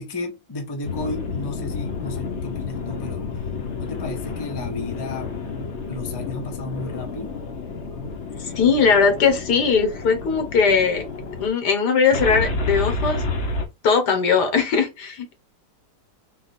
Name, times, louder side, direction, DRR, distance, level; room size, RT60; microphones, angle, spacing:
voice 1, 0.0-3.3 3.8-5.3 5.9-7.4, left 2 dB, 20° left, 0.7 m, -33 dB
sound 1, 0.8-11.5 12.1-13.6, left 3 dB, 50° left, 1.0 m, -30 dB
voice 2, 8.4-11.0 11.4-13.2 13.8-15.3, left 5 dB, 80° left, 1.7 m, -19 dB
4.2 x 2.4 x 4.0 m
omnidirectional pair, 1.7 m